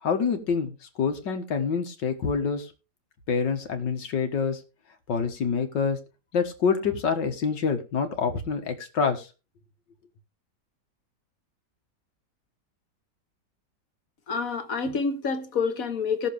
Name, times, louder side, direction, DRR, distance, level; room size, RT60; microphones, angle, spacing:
voice 1, 0.0-2.7 3.3-4.6 5.1-6.0 6.3-9.3, left 5 dB, 85° left, 2.2 m, -26 dB
voice 2, 14.3-16.3, left 5 dB, 55° left, 1.8 m, -28 dB
18.5 x 6.8 x 3.4 m
omnidirectional pair, 1.9 m